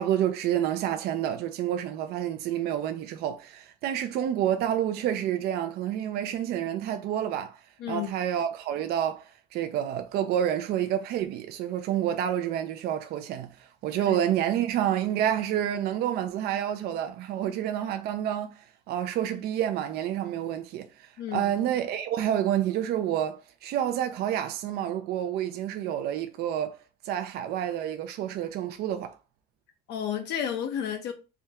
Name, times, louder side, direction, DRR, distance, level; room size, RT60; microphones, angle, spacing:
voice 1, 0.0-7.6 7.9-26.8 27.0-29.2, right 10 dB, 70° right, 0.4 m, -29 dB
voice 2, 21.2-21.5 29.9-31.1, left 9 dB, 80° left, 0.6 m, -32 dB
3.4 x 2.2 x 2.8 m
cardioid pair, 110°, 17 cm